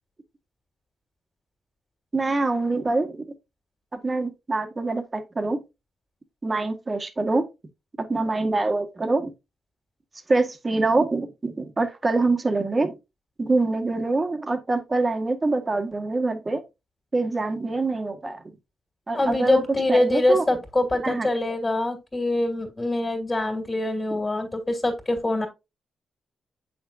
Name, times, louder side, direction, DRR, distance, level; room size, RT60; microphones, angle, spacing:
voice 1, 2.1-3.3 4.0-5.6 6.4-7.5 8.0-9.3 10.3-13.0 13.4-16.6 17.1-18.4 19.1-19.6 19.9-20.4 21.0-21.3 24.1-24.2, right 3 dB, 30° right, 1.6 m, -25 dB
voice 2, 19.1-25.5, left 2 dB, 20° left, 2.6 m, -24 dB
7.8 x 6.2 x 2.7 m
cardioid pair, 70°, 0 cm